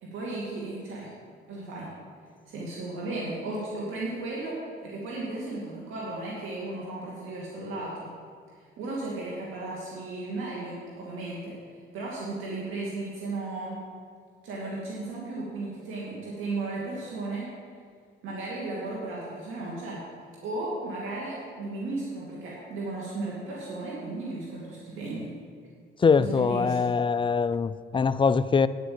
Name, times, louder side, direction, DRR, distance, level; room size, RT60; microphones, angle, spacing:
voice 1, 0.0-1.1 1.5-1.9 2.5-4.6 4.8-8.1 8.8-11.5 11.9-13.8 14.4-17.5 18.2-20.0 20.4-25.3 26.2-26.8, right 2 dB, 90° right, -5 dB, 2.5 m, -35 dB
voice 2, 26.0-28.7, left 5 dB, 25° left, 14 dB, 0.4 m, -23 dB
9.6 x 9.4 x 7.8 m, 2.1 s
cardioid pair, 90°, 20 cm